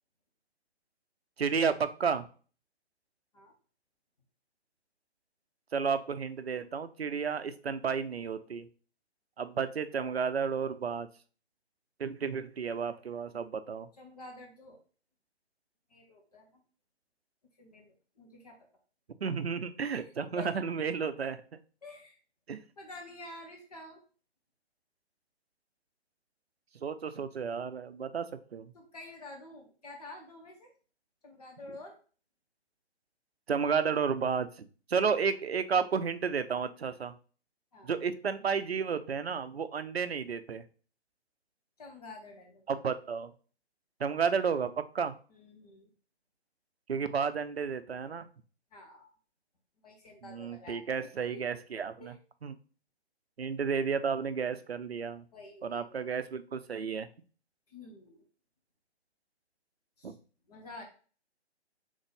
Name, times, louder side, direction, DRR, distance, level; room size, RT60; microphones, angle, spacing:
voice 1, 1.4-2.3 5.7-8.7 9.4-11.1 12.0-13.9 19.2-21.4 22.5-22.6 26.8-28.7 33.5-37.1 37.8-40.6 42.7-43.3 44.0-45.2 46.9-48.3 50.2-52.1 52.4-52.5 53.4-55.2 55.6-57.1 60.0-60.1, right 6 dB, 65° right, 12 dB, 0.6 m, -32 dB
voice 2, 14.0-14.8 15.9-16.6 17.6-18.6 19.8-20.0 20.4-20.5 21.2-21.3 21.8-22.2 22.8-24.0 28.7-30.7 31.2-32.0 37.7-37.9 41.8-42.6 45.3-45.9 48.7-49.1 49.8-51.4 52.0-52.2 55.3-56.0 57.7-58.2 60.0-60.1 60.5-60.8, left 2 dB, 35° left, 1 dB, 1.0 m, -49 dB
3.9 x 3.6 x 3.3 m, 0.39 s
figure-of-eight pair, 140°, 34 cm